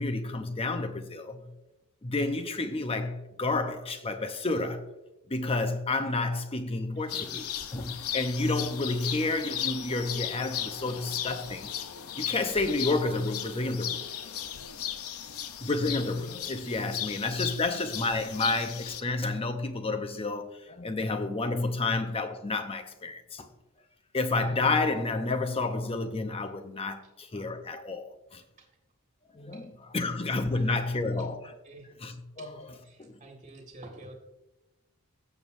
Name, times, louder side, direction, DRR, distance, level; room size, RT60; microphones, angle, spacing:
voice 1, 0.0-1.5 2.0-4.8 5.3-7.4 7.7-11.7 12.1-14.1 15.6-23.5 24.1-28.4 29.3-31.4 32.0-32.6 33.0-33.2, left 3 dB, 25° left, 0.7 m, -30 dB
voice 2, 7.0-7.3 15.3-15.4 28.6-28.7 29.5-29.7 30.5-31.3 31.6-31.9 32.4-32.5 32.8-34.1, right 2 dB, 30° right, 1.8 m, -49 dB
sound 1, 7.1-19.0, left 10 dB, 80° left, 0.7 m, -36 dB
17.0 x 7.1 x 2.6 m
head